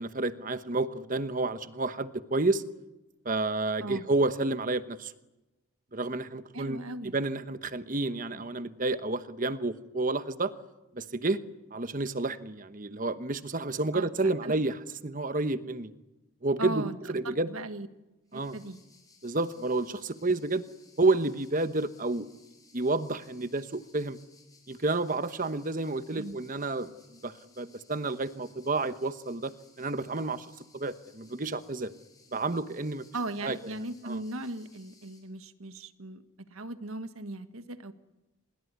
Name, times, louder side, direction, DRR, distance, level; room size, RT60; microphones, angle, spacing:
voice 1, 0.0-2.6 3.2-5.1 5.9-6.8 7.1-10.5 10.9-11.4 11.7-14.7 15.0-15.9 16.4-17.5 18.3-18.6 19.2-20.6 21.0-22.3 22.7-24.2 24.7-26.9 27.2-30.5 30.7-31.9 32.3-33.0 33.4-33.6 34.0-34.2, right 2 dB, 35° right, 11 dB, 1.1 m, -30 dB
voice 2, 6.5-7.2 8.1-8.4 13.9-14.1 14.4-14.5 16.6-17.0 17.2-17.9 18.3-18.8 26.2-26.4 33.1-36.2 36.5-37.9, right 2 dB, 75° right, 10 dB, 1.5 m, -38 dB
sound 1, 18.3-35.2, left 4 dB, 15° left, 5.9 m, -61 dB
26.0 x 21.5 x 9.6 m, 1.0 s
head